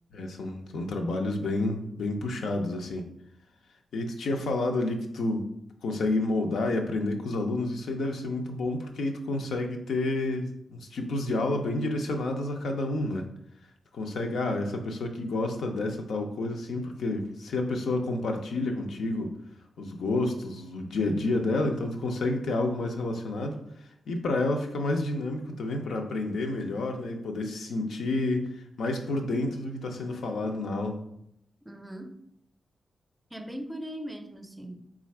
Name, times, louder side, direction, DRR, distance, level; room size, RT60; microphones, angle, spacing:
voice 1, 0.1-3.1 3.9-5.5 5.8-13.2 13.9-19.3 19.8-23.6 24.1-28.5 28.8-31.0, left 2 dB, 85° left, 3 dB, 0.5 m, -29 dB
voice 2, 31.6-32.2 33.3-34.9, equal, 15° right, 6 dB, 0.5 m, -39 dB
4.0 x 2.4 x 4.2 m, 0.75 s
cardioid pair, 75°, 0 cm